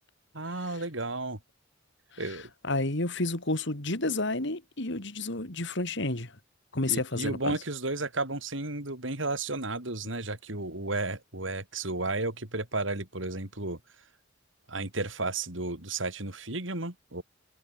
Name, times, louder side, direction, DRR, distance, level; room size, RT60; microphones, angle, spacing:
voice 1, 0.3-1.4 2.2-2.5 6.9-13.8 14.7-17.2, right 2 dB, 65° right, 4.6 m, -33 dB
voice 2, 2.6-6.3 6.7-7.5, left 2 dB, 60° left, 3.3 m, -30 dB
head